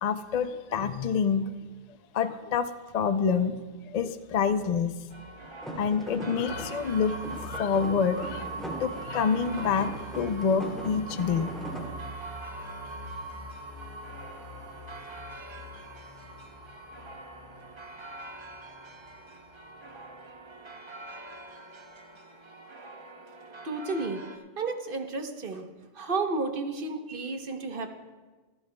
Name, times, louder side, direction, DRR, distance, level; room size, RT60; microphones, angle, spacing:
voice 1, 0.0-1.4 2.1-4.9 5.8-7.2 7.4-8.5 8.8-11.5, left 6 dB, 55° left, 10 dB, 0.4 m, -27 dB
sound 1, 5.1-24.4, right 2 dB, 30° right, 0.6 m, -46 dB
sound 2, 5.6-11.9, right 1 dB, ahead, 2.6 m, -40 dB
sound 3, 6.5-20.3, right 2 dB, 75° right, 3.6 m, -42 dB
voice 2, 23.6-24.2 24.6-25.7 25.9-27.9, right 3 dB, 50° right, 5 dB, 1.0 m, -32 dB
25.5 x 9.1 x 2.2 m, 1.3 s
omnidirectional pair, 1.3 m